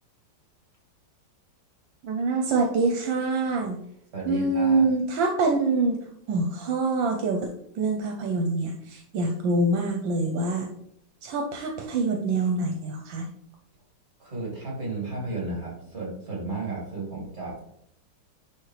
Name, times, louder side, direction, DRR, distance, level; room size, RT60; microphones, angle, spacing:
voice 1, 2.0-3.8 4.3-6.0 6.3-7.5 7.7-10.7 11.2-13.3, right 3 dB, 80° right, 3 dB, 1.4 m, -25 dB
voice 2, 4.1-4.9 14.2-17.6, right 2 dB, 35° right, -3 dB, 2.8 m, -33 dB
10.5 x 3.8 x 3.2 m, 0.72 s
omnidirectional pair, 2.0 m